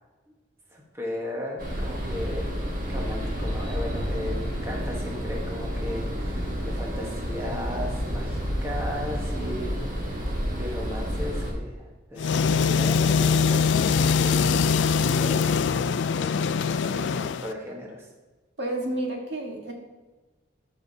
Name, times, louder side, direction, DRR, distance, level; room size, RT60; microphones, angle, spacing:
voice 1, 0.7-16.2 16.6-18.1, left 1 dB, 15° right, -1 dB, 1.2 m, -37 dB
sound 1, 1.6-11.5, equal, 45° right, 1.9 m, -30 dB
sound 2, 12.2-17.5, left 5 dB, 75° left, 0.3 m, -22 dB
voice 2, 18.6-19.7, right 1 dB, 70° right, 1 dB, 1.6 m, -30 dB
13.5 x 5.7 x 2.8 m, 1.2 s
head